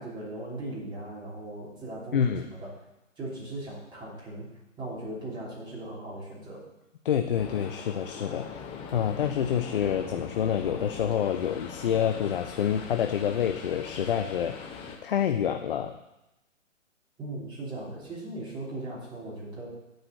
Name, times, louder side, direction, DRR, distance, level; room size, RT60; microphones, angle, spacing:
voice 1, 0.0-2.7 3.2-4.5 4.8-6.6 17.2-19.7, right 2 dB, 10° right, -5 dB, 3.1 m, -38 dB
voice 2, 2.1-2.5 7.0-14.6 15.0-16.0, left 9 dB, 45° left, 6 dB, 0.6 m, -27 dB
sound 1, 7.4-15.0, left 6 dB, 15° left, 0.9 m, -41 dB
9.1 x 4.9 x 7.7 m, 0.95 s
figure-of-eight pair, 135°, 39 cm